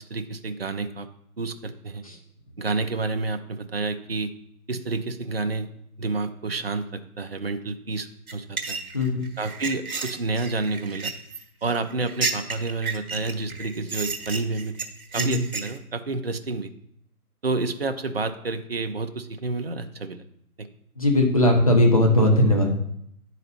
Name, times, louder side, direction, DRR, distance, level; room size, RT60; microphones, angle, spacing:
voice 1, 0.1-1.1 1.4-2.0 2.6-4.3 4.7-5.7 6.0-8.8 9.4-11.1 11.6-14.8 15.1-16.7 17.4-20.2 20.6-20.7, right 3 dB, 45° right, 8 dB, 0.4 m, -29 dB
sound 1, 8.3-15.8, right 4 dB, 70° right, 1.0 m, -32 dB
voice 2, 8.9-9.3 15.2-15.4 21.0-22.7, left 1 dB, 25° left, 2 dB, 0.6 m, -19 dB
9.8 x 4.0 x 4.2 m, 0.73 s
figure-of-eight pair, 155°, 45 cm